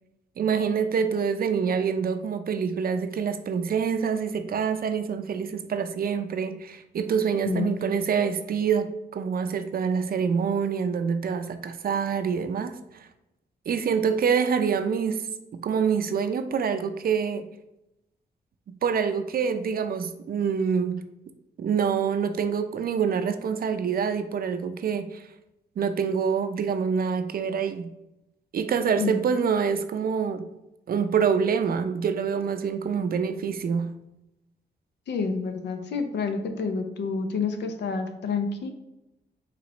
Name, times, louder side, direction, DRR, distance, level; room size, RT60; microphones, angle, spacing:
voice 1, 0.4-13.1 13.7-15.3 15.5-17.5 18.8-21.0 21.6-25.3 25.8-27.9 28.5-30.5 30.9-33.9, right 6 dB, 55° right, 9 dB, 0.5 m, -26 dB
voice 2, 35.1-38.7, left 5 dB, 75° left, 7 dB, 0.6 m, -28 dB
4.9 x 3.0 x 3.0 m, 0.90 s
cardioid pair, 65°, 18 cm